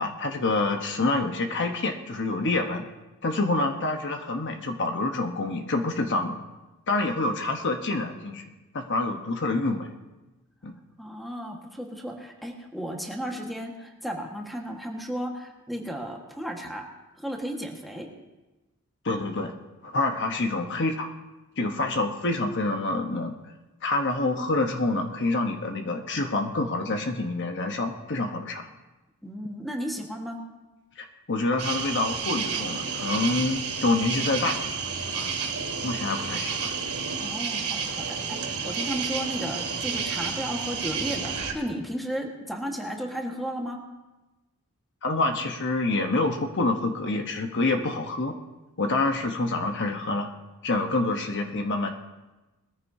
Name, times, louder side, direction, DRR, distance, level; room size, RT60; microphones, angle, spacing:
voice 1, 0.0-2.9 3.2-6.4 6.9-8.4 8.7-9.9 10.6-10.8 19.0-19.5 19.8-21.1 21.6-23.4 23.8-28.7 31.0-35.5 35.8-36.7 45.0-48.3 48.8-50.3 50.6-51.9, left 2 dB, 55° left, 4 dB, 1.1 m, -27 dB
voice 2, 11.0-16.9 17.2-18.1 29.2-30.4 37.2-43.8, equal, ahead, 1 dB, 1.5 m, -34 dB
sound 1, 31.6-41.5, right 5 dB, 80° right, 2.2 m, -31 dB
21.0 x 14.5 x 2.8 m, 1.1 s
head